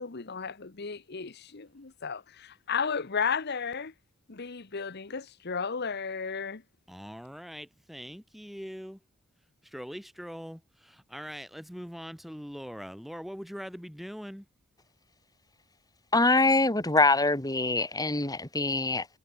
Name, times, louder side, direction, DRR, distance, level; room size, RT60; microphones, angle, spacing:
voice 1, 0.0-3.9 4.3-6.6, left 6 dB, 55° left, 1.0 m, -33 dB
voice 2, 6.9-9.0 9.7-14.4, equal, ahead, 2.2 m, -42 dB
voice 3, 16.1-19.1, left 2 dB, 20° left, 2.5 m, -24 dB
head